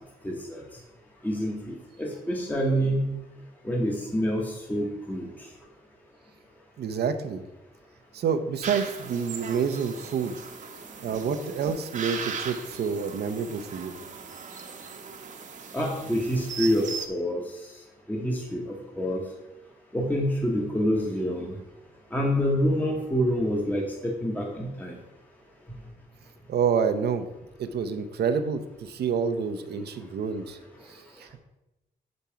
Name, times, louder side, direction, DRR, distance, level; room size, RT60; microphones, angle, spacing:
voice 1, 0.2-0.6 1.2-3.1 3.6-5.3 15.7-17.4 18.1-19.2 19.9-21.6 22.1-24.9, equal, 10° left, -1 dB, 0.9 m, -27 dB
voice 2, 6.8-7.4 8.1-10.4 11.0-13.9 26.5-27.3 27.6-30.6 30.9-31.4, right 6 dB, 80° right, 8 dB, 0.7 m, -28 dB
sound 1, 8.6-17.1, right 5 dB, 50° right, 0.9 m, -38 dB
6.0 x 5.3 x 5.7 m, 0.97 s
wide cardioid pair, 125°, 17 cm